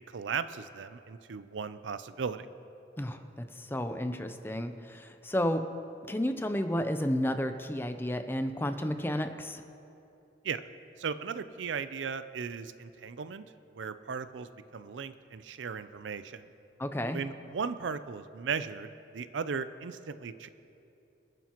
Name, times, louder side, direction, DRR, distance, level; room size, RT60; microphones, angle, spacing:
voice 1, 0.0-2.5 10.4-10.6 11.0-13.4 13.7-16.4 17.1-20.5, right 6 dB, 85° right, 13 dB, 0.5 m, -37 dB
voice 2, 3.6-5.6 6.1-9.6 16.8-17.2, equal, 10° left, 8 dB, 0.5 m, -31 dB
27.0 x 9.2 x 3.0 m, 2.8 s
head